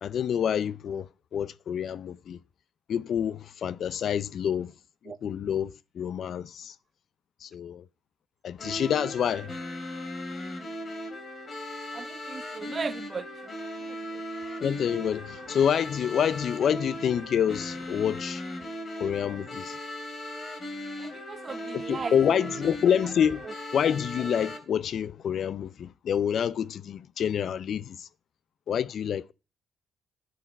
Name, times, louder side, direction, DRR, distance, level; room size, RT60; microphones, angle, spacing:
voice 1, 0.0-1.1 1.3-2.4 2.9-4.7 5.2-6.7 7.4-7.8 8.4-9.5 14.6-18.4 19.0-19.8 21.7-23.4 23.7-28.1 28.7-29.3, left 8 dB, 60° left, 0.5 m, -27 dB
sound 1, 8.6-24.6, left 1 dB, 45° left, 3.0 m, -38 dB
voice 2, 11.9-14.2 21.0-22.5 23.4-23.5, right 5 dB, 40° right, 0.7 m, -38 dB
9.9 x 8.7 x 4.4 m
cardioid pair, 90°, 0 cm